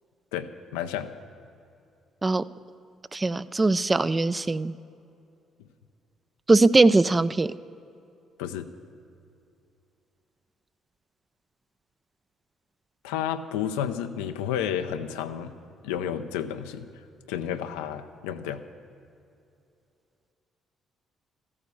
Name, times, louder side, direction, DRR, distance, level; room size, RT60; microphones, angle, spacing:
voice 1, 0.3-1.2 8.4-8.7 13.0-15.5 15.8-16.9 17.3-18.6, left 9 dB, 80° left, 9 dB, 0.5 m, -31 dB
voice 2, 3.1-4.7 6.5-7.5, right 3 dB, 25° right, 16 dB, 0.4 m, -21 dB
13.5 x 9.6 x 7.1 m, 2.6 s
hypercardioid pair, 50°, 0 cm